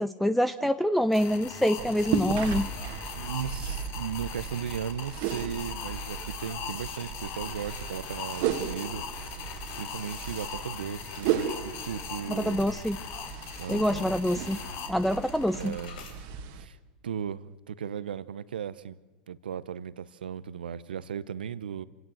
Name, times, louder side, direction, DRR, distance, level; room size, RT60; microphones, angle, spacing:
voice 1, 0.0-2.7 12.3-13.0 13.7-14.6 14.9-15.8, equal, ahead, 12 dB, 0.7 m, -26 dB
sound 1, 1.1-15.9, left 7 dB, 55° left, 3.2 m, -40 dB
sound 2, 1.8-16.7, right 8 dB, 60° right, 2.0 m, -36 dB
voice 2, 3.2-9.5 9.8-12.6 13.6-14.1 15.6-15.9 16.5-16.8 17.0-19.0 19.3-21.8, right 8 dB, 90° right, 17 dB, 0.8 m, -36 dB
sound 3, 9.3-10.6 11.0-11.1 11.7-11.8 12.2-12.5 12.9-14.0 14.3-14.6 14.9-16.2, left 6 dB, 75° left, 4.3 m, -52 dB
27.0 x 17.5 x 7.8 m, 1.3 s
hypercardioid pair, 100°, 5 cm